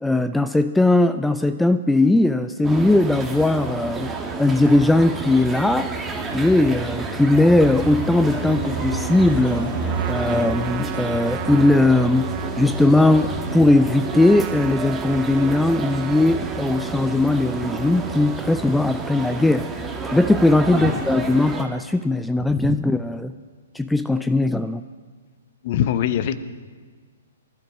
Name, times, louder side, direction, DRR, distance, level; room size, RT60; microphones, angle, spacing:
voice 1, 0.0-12.3 12.6-19.7 20.1-23.3 23.7-24.8, left 2 dB, 5° left, 11 dB, 0.3 m, -19 dB
sound 1, 2.6-21.6, right 4 dB, 10° right, 1.5 m, -30 dB
sound 2, 8.3-15.3, right 1 dB, 90° right, 1.0 m, -36 dB
Trumpet, 9.9-18.7, right 12 dB, 35° right, 0.7 m, -36 dB
voice 2, 22.4-22.7 25.6-26.4, left 10 dB, 45° left, 13 dB, 0.8 m, -23 dB
24.0 x 12.5 x 3.1 m, 1.5 s
figure-of-eight pair, 120°, 0 cm